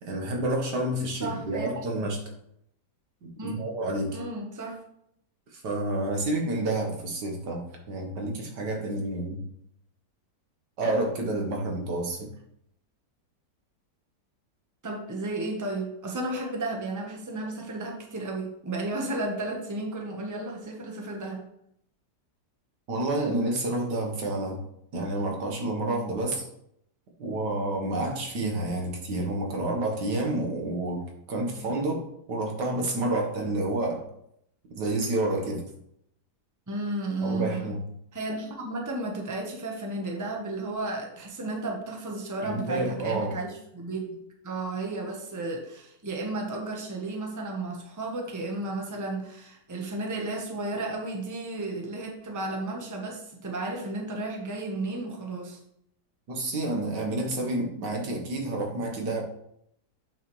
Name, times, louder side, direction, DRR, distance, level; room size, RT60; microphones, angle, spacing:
voice 1, 0.0-2.2 3.2-4.2 5.5-9.4 10.8-12.3 22.9-24.6 24.9-26.5 27.2-31.0 31.3-34.0 34.8-35.6 37.2-37.8 42.4-43.4 56.3-59.2, right 2 dB, 80° right, 1 dB, 2.0 m, -29 dB
voice 2, 1.2-2.1 3.4-3.5 4.1-4.8 14.8-21.4 36.7-37.8 38.1-55.6, right 2 dB, 10° right, 1 dB, 1.0 m, -33 dB
8.2 x 6.0 x 3.2 m, 0.74 s
omnidirectional pair, 1.8 m